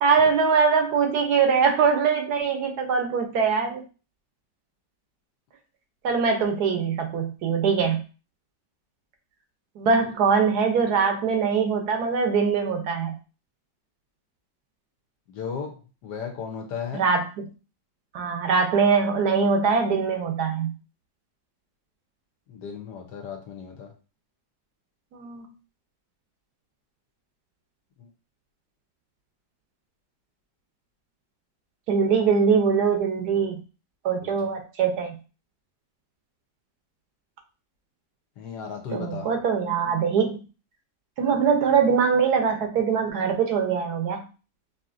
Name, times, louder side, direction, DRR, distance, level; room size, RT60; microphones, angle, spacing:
voice 1, 0.0-3.8 6.0-8.0 9.8-13.2 16.9-17.2 18.1-20.7 25.1-25.5 31.9-33.6 34.0-35.2 38.9-40.4 41.2-44.2, right 5 dB, 70° right, 4 dB, 1.1 m, -22 dB
voice 2, 15.3-17.0 22.5-23.9 34.2-34.3 38.4-39.3, left 6 dB, 70° left, 3 dB, 1.4 m, -35 dB
4.9 x 2.8 x 2.5 m, 0.33 s
omnidirectional pair, 1.9 m